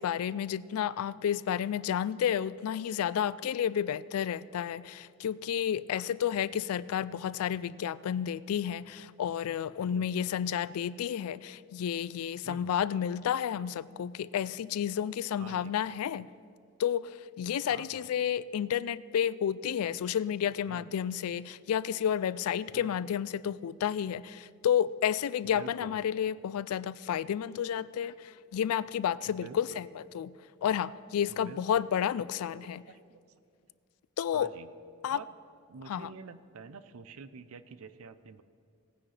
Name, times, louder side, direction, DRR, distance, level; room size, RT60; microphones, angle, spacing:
voice 1, 0.0-16.3 16.8-30.3 30.6-32.8 34.2-34.5 35.0-35.2 35.9-36.1, left 9 dB, 85° left, 19 dB, 0.3 m, -31 dB
voice 2, 9.8-10.3 12.4-12.8 15.4-15.7 17.7-18.1 20.7-20.8 22.7-22.9 25.5-25.9 29.3-29.8 31.3-31.8 32.6-33.2 34.3-34.7 35.1-35.3 35.7-38.4, right 5 dB, 80° right, 13 dB, 0.5 m, -48 dB
18.5 x 9.7 x 3.3 m, 2.3 s
head